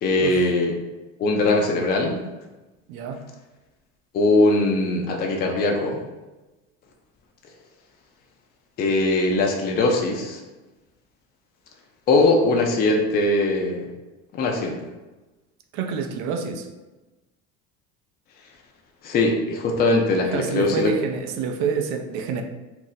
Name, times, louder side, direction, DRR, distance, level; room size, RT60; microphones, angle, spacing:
voice 1, 0.0-0.7 1.2-2.2 4.1-6.0 8.8-10.4 12.1-13.9 14.3-14.8 19.0-20.9, left 2 dB, 30° left, 1 dB, 0.4 m, -21 dB
voice 2, 2.9-3.2 15.7-16.7 20.3-22.4, right 6 dB, 60° right, 5 dB, 0.5 m, -27 dB
2.6 x 2.0 x 3.9 m, 1.1 s
supercardioid pair, 110°, 32 cm